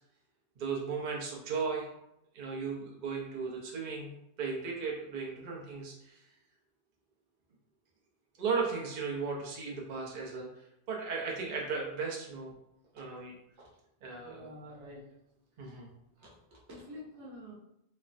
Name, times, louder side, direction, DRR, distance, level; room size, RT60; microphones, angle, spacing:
voice 1, 0.6-1.9 2.3-4.1 4.4-6.2 8.4-12.5 12.9-13.3 14.0-14.4 15.6-15.9, right 5 dB, 50° right, -3 dB, 0.6 m, -36 dB
voice 2, 14.2-15.0 16.2-16.3 16.7-17.5, left 1 dB, 80° right, -5 dB, 1.2 m, -47 dB
3.2 x 2.1 x 2.4 m, 0.82 s
omnidirectional pair, 1.2 m